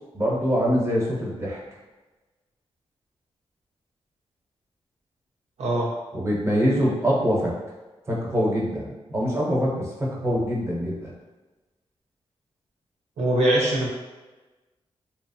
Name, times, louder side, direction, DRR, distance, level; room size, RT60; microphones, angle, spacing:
voice 1, 0.1-1.6 6.1-7.5 8.1-11.1, equal, 25° right, -4 dB, 0.8 m, -24 dB
voice 2, 5.6-5.9 13.2-13.9, right 1 dB, 85° right, -3 dB, 0.7 m, -22 dB
2.9 x 2.0 x 2.7 m, 1.2 s
cardioid pair, 85°, 11 cm